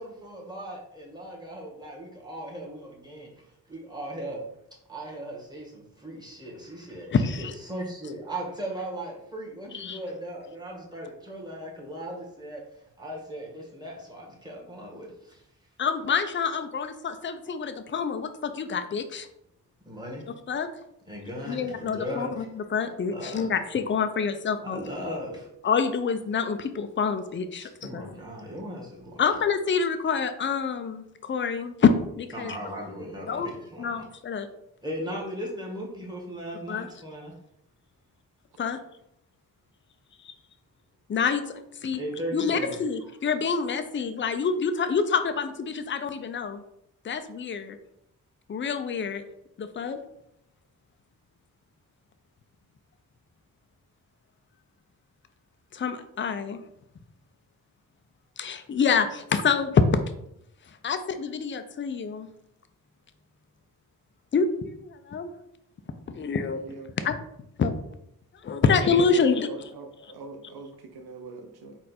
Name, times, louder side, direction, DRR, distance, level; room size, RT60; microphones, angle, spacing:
voice 1, 0.0-3.3 3.7-4.5 4.9-12.7 13.0-15.4 19.8-20.3 21.1-22.5 23.1-23.5 24.7-25.5 27.6-29.4 32.3-34.0 34.8-37.4 41.9-42.8, equal, 10° right, -3 dB, 1.5 m, -37 dB
voice 2, 7.1-7.5 9.7-10.0 15.8-19.3 20.5-20.7 21.5-24.8 25.6-28.1 29.2-31.9 32.2-32.6 33.3-33.5 33.8-34.5 36.7-36.9 38.6-38.8 40.2-40.3 41.1-42.0 42.3-46.6 47.0-47.8 48.5-49.2 49.6-50.0 55.7-56.6 58.4-59.8 60.8-62.3 64.3-64.5 64.8-65.3 66.2-66.6 67.0-67.2 67.6-67.7 68.4-69.7, left 6 dB, 30° left, 9 dB, 0.4 m, -27 dB
voice 3, 66.5-66.9 68.6-71.8, right 3 dB, 80° right, 5 dB, 0.7 m, -42 dB
4.3 x 2.5 x 4.2 m, 0.79 s
cardioid pair, 65°, 37 cm